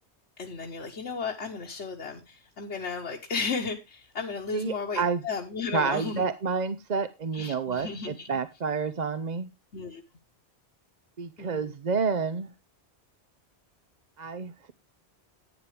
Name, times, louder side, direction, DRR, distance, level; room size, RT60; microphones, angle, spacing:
voice 1, 0.4-6.3 7.3-8.3 9.7-10.0 11.4-11.7, left 5 dB, 85° left, -1 dB, 1.6 m, -34 dB
voice 2, 4.5-5.2 5.7-9.5 11.2-12.5 14.2-14.7, right 5 dB, 45° right, 12 dB, 0.8 m, -29 dB
12.0 x 9.4 x 3.3 m, 0.25 s
omnidirectional pair, 1.1 m